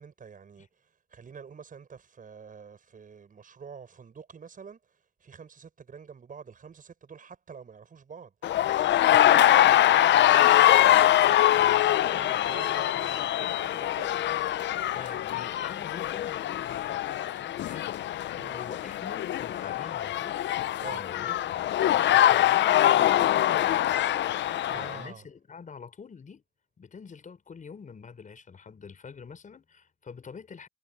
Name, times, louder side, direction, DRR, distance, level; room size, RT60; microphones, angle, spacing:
voice 1, 0.0-14.1 18.4-18.6 20.8-21.0 24.3-25.3, right 6 dB, 45° right, 6.3 m, -46 dB
sound 1, 8.4-25.0, left 12 dB, 65° left, 0.7 m, -23 dB
voice 2, 14.9-20.4 20.8-24.4 24.7-26.4 26.8-30.7, left 5 dB, 40° left, 4.8 m, -46 dB
cardioid pair, 90°, 20 cm